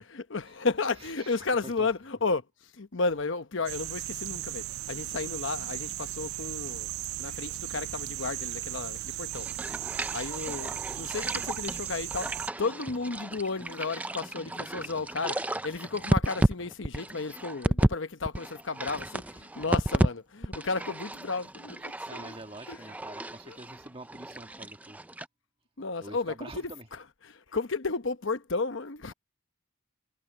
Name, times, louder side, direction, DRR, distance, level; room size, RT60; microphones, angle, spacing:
voice 1, 0.0-2.4 2.8-6.9 7.2-9.5 10.1-22.3 22.7-22.8 23.5-23.6 25.8-26.7 27.2-29.1, left 4 dB, 65° left, 1.0 m, -33 dB
voice 2, 1.0-1.9 21.8-25.0 26.0-26.9, right 2 dB, 25° right, 1.7 m, -46 dB
sound 1, 3.7-12.5, right 15 dB, 80° right, 0.3 m, -36 dB
sound 2, 6.1-14.5, right 5 dB, 60° right, 5.5 m, -61 dB
sound 3, 9.3-18.0 18.2-20.1 20.4-25.3, right 1 dB, 5° right, 0.4 m, -32 dB
head